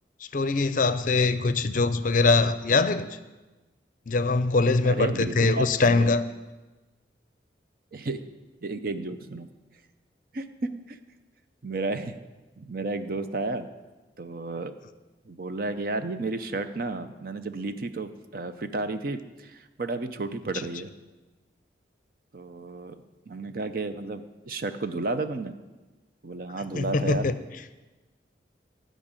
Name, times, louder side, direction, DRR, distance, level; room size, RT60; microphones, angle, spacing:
voice 1, 0.3-3.1 4.1-6.3 26.7-27.3, left 3 dB, 45° left, 12 dB, 0.5 m, -22 dB
voice 2, 4.8-6.1 7.9-8.2 8.6-9.5 10.3-11.0 11.6-12.2 12.6-13.7 14.2-14.7 15.3-20.9 22.3-25.5 26.2-27.3, right 3 dB, 50° right, 9 dB, 0.6 m, -32 dB
12.5 x 5.2 x 9.0 m, 1.2 s
head